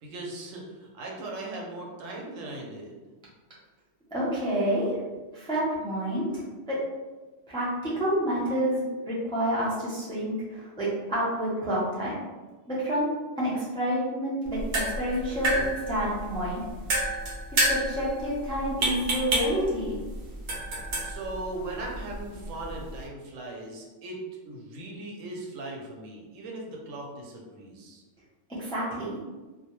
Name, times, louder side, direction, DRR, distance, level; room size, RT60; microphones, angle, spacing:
voice 1, 0.0-2.9 21.0-28.0, right 2 dB, 80° right, -1 dB, 1.0 m, -38 dB
voice 2, 4.1-4.9 5.3-6.8 7.5-12.1 12.7-15.6 15.9-16.6 17.5-20.0 28.6-29.2, equal, 5° left, -8 dB, 0.4 m, -29 dB
sound 1, 14.5-23.1, right 1 dB, 55° right, 0.6 m, -30 dB
2.2 x 2.2 x 2.9 m, 1.2 s
omnidirectional pair, 1.3 m